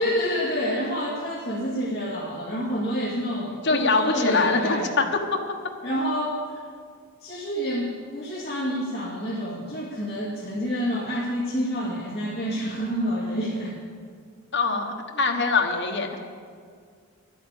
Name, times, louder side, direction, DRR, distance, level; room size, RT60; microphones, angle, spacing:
voice 1, 0.0-5.0 5.8-6.4 7.2-13.8, equal, 25° left, -9 dB, 2.3 m, -28 dB
voice 2, 3.6-5.1 5.3-5.4 14.5-16.1, left 4 dB, 55° left, 3 dB, 1.3 m, -23 dB
11.5 x 8.5 x 8.3 m, 2.1 s
head